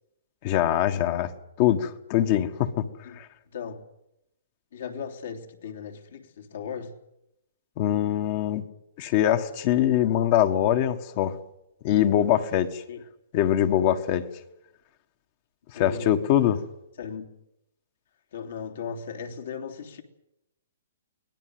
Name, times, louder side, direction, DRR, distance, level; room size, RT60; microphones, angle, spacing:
voice 1, 0.4-1.3 1.6-2.9 3.2-3.3 7.8-8.6 9.0-11.3 11.8-12.8 13.3-14.2 15.7-16.6, left 11 dB, 40° left, 1.6 m, -23 dB
voice 2, 3.5-3.9 4.7-7.0 12.9-13.0 15.7-16.6 17.0-17.3 18.3-20.0, left 6 dB, 70° left, 3.1 m, -37 dB
23.5 x 18.5 x 8.0 m
hypercardioid pair, 140°, 0 cm